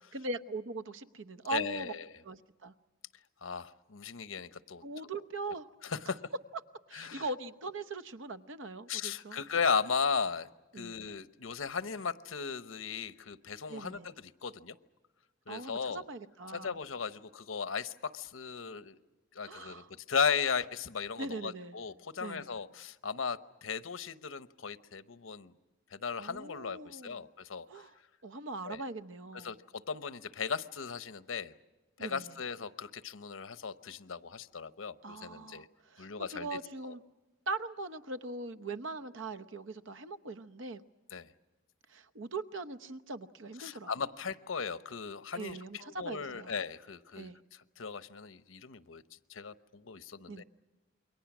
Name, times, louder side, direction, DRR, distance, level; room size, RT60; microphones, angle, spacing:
voice 1, 0.1-1.9 2.2-2.7 4.8-5.7 6.9-9.4 10.7-11.0 13.7-14.1 15.5-16.8 19.4-19.9 21.2-21.8 22.2-22.5 26.2-27.2 27.7-27.9 28.2-29.5 32.0-32.3 35.0-37.0 37.5-40.8 41.9-43.9 45.3-46.5 47.2-47.4 50.3-50.4, right 3 dB, 70° right, 11 dB, 1.0 m, -41 dB
voice 2, 1.5-2.0 3.4-4.8 5.8-6.2 6.9-7.2 8.9-10.5 10.7-14.8 15.5-16.0 16.5-19.0 19.3-25.5 25.9-27.9 28.6-28.8 29.3-31.5 32.0-35.7 36.0-36.6 41.1-41.3 43.6-47.3 47.8-49.0 49.3-50.4, left 6 dB, 85° left, 13 dB, 0.9 m, -36 dB
28.5 x 23.0 x 6.1 m, 1.2 s
head